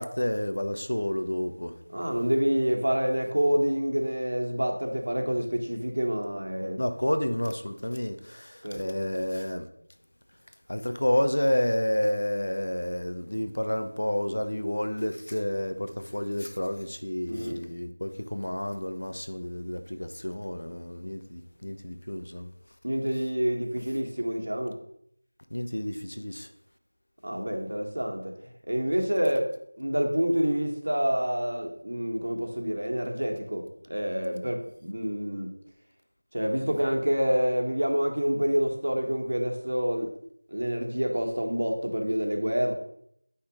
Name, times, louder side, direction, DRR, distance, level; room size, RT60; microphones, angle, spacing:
voice 1, 0.0-1.8 6.8-9.7 10.7-22.5 25.5-26.5, left 1 dB, 65° left, 0.9 m, -30 dB
voice 2, 1.9-6.8 8.6-8.8 17.3-17.6 22.8-24.8 27.2-28.3 28.7-35.5 36.3-40.1 40.5-42.7, equal, 65° right, 1.6 m, -27 dB
8.7 x 5.7 x 3.9 m
figure-of-eight pair, 175°, 0 cm